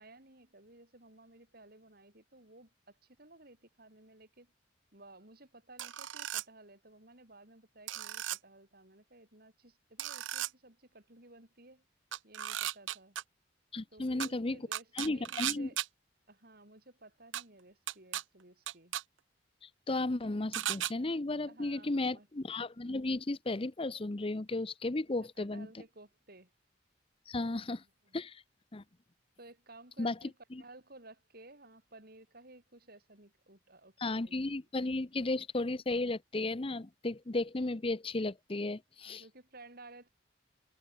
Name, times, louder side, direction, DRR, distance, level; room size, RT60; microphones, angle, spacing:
voice 1, 0.0-4.5 4.9-11.8 12.2-13.2 13.9-15.8 16.3-19.0 21.5-22.3 25.4-26.5 27.5-28.2 29.4-30.3 30.6-34.6 39.0-40.1, right 2 dB, 55° right, 6.9 m, -56 dB
sound 1, 5.8-6.4 7.9-8.4 10.0-10.5 12.1-13.2 14.2-14.3 14.7-15.9 17.3-17.4 17.9-18.2 18.7-19.0 20.5-20.9, right 12 dB, 85° right, 0.7 m, -36 dB
voice 2, 13.7-14.6 15.0-15.7 19.6-25.7 27.3-27.8 28.1-28.4 28.7-28.8 30.0-30.2 30.5-30.6 34.0-39.2, left 2 dB, 30° left, 0.7 m, -34 dB
head